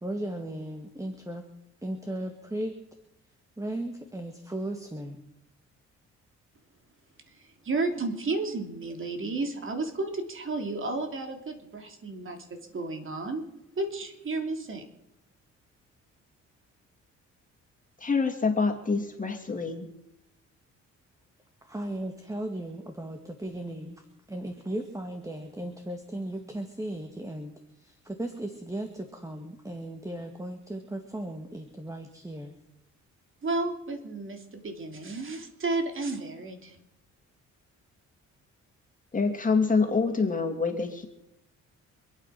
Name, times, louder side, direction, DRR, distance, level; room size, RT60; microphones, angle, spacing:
voice 1, 0.0-1.5 1.8-2.8 3.6-5.2 21.6-24.0 24.3-32.6, right 1 dB, 10° right, 5 dB, 2.1 m, -36 dB
voice 2, 7.3-13.4 13.8-14.8 33.4-36.8, right 3 dB, 45° right, 5 dB, 3.2 m, -32 dB
voice 3, 18.0-19.9 39.1-41.1, left 4 dB, 25° left, 4 dB, 2.9 m, -26 dB
26.5 x 9.1 x 6.0 m, 0.83 s
cardioid pair, 90°, 30 cm